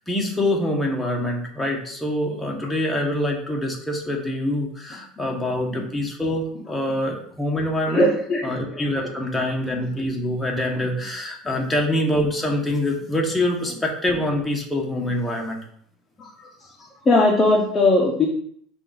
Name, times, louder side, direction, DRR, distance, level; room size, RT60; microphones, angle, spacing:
voice 1, 0.1-8.1 8.4-15.6, left 1 dB, 10° left, -1 dB, 1.1 m, -25 dB
voice 2, 7.9-8.8 10.1-10.2 16.2-16.3 17.0-18.3, left 2 dB, 25° left, -1 dB, 0.8 m, -19 dB
5.3 x 2.6 x 3.9 m, 0.63 s
supercardioid pair, 105°, 0 cm